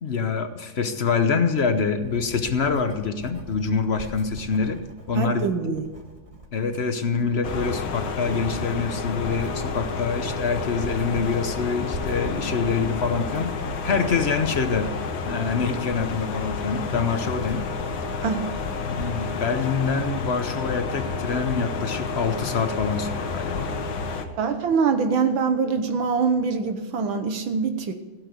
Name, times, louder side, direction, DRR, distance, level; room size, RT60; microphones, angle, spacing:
voice 1, 0.0-4.8 5.1-5.7 6.5-14.9 15.2-17.7 18.8-23.7, left 5 dB, 45° left, 9 dB, 0.9 m, -25 dB
Writing, 1.6-20.2, right 1 dB, 20° right, 1.6 m, -44 dB
voice 2, 5.2-5.9 18.2-18.5 24.4-27.9, right 5 dB, 80° right, 7 dB, 1.9 m, -24 dB
sound 1, 7.4-24.3, left 4 dB, 80° left, 1.9 m, -30 dB
16.0 x 8.0 x 8.3 m, 1.2 s
omnidirectional pair, 2.1 m